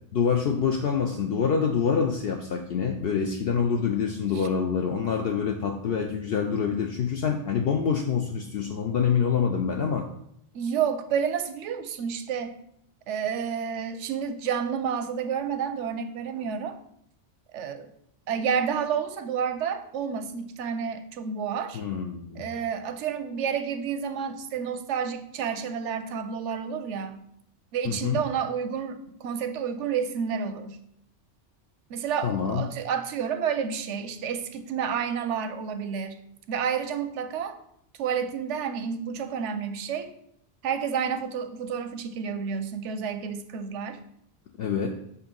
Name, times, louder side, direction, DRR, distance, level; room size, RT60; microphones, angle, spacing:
voice 1, 0.1-10.1 21.7-22.5 27.8-28.2 32.2-32.6 44.6-44.9, left 6 dB, 65° left, 2 dB, 0.7 m, -26 dB
voice 2, 10.5-12.6 13.1-16.8 17.5-17.9 18.3-21.8 22.4-27.2 27.7-30.8 31.9-36.2 36.5-37.6 38.0-40.1 40.6-44.0, right 7 dB, 85° right, 9 dB, 0.9 m, -30 dB
6.8 x 2.7 x 5.2 m, 0.72 s
omnidirectional pair, 1.2 m